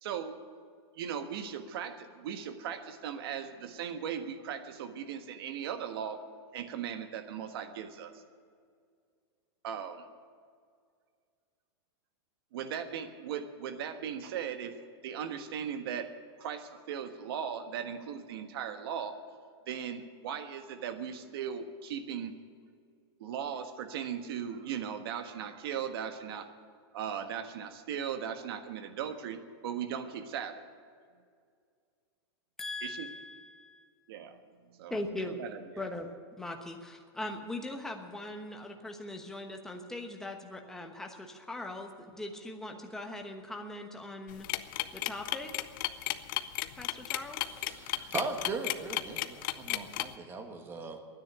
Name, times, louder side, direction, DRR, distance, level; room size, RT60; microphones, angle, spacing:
voice 1, 0.0-0.4 0.9-6.2 6.5-8.2 9.6-10.1 12.5-14.8 15.0-16.1 16.4-19.2 19.7-22.3 23.2-26.5 26.9-30.6 32.8-33.1 34.1-34.4 34.7-34.9 35.4-35.8, right 8 dB, 60° right, 8 dB, 1.4 m, -38 dB
voice 2, 32.6-33.9 34.9-35.4 35.8-36.1 36.4-44.5 44.9-45.5 46.8-47.4, left 1 dB, 5° left, 2 dB, 1.2 m, -40 dB
sound 1, 44.3-50.1, left 16 dB, 50° left, 0.7 m, -33 dB
voice 3, 47.7-51.0, right 3 dB, 15° right, 5 dB, 1.4 m, -38 dB
12.0 x 10.0 x 10.0 m, 2.1 s
supercardioid pair, 155°, 14 cm